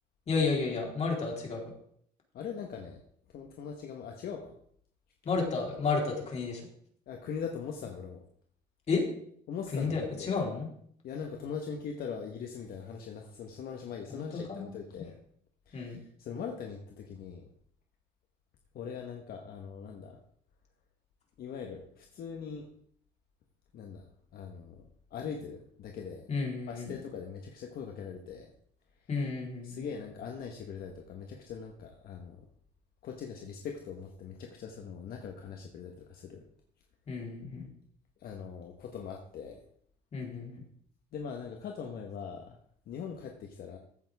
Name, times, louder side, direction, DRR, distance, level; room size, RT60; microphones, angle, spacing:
voice 1, 0.3-1.7 5.2-6.7 8.9-9.0 9.7-10.7 14.1-14.7 15.7-16.0 26.3-27.0 29.1-29.8 37.1-37.7 40.1-40.6, left 4 dB, 40° left, -1 dB, 4.2 m, -32 dB
voice 2, 2.3-3.0 3.3-4.6 7.1-8.2 9.5-10.3 11.0-15.2 15.7-17.5 18.7-20.2 21.4-22.7 23.7-24.0 24.3-26.3 26.7-28.5 28.9-29.1 29.6-32.4 33.0-36.5 38.2-39.6 41.1-42.6 42.9-43.8, left 6 dB, 65° left, 2 dB, 1.5 m, -41 dB
14.5 x 9.2 x 3.7 m, 0.64 s
cardioid pair, 110°, 17 cm